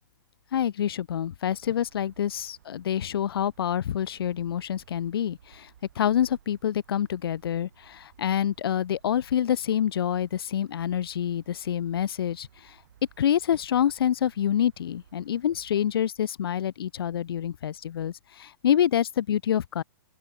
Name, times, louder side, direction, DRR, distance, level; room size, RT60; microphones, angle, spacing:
voice 1, 0.5-5.7 6.0-12.8 13.2-19.8, left 10 dB, 80° left, 0.4 m, -27 dB
sound 1, 1.4-16.1, right 10 dB, 50° right, 1.6 m, -59 dB
open air
hypercardioid pair, 180°, 12 cm